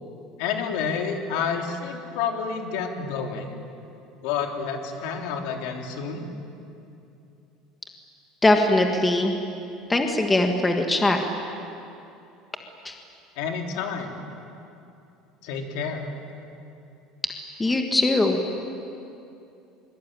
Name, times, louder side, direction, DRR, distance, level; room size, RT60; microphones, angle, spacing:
voice 1, 0.4-3.6 4.2-6.2 13.3-14.2 15.4-16.1, left 6 dB, 70° left, 2 dB, 3.3 m, -29 dB
voice 2, 8.4-9.3 9.9-11.2 12.8-12.9 17.6-18.4, left 2 dB, 10° left, 3 dB, 1.5 m, -21 dB
24.0 x 23.5 x 9.1 m, 2.7 s
cardioid pair, 175°, 0 cm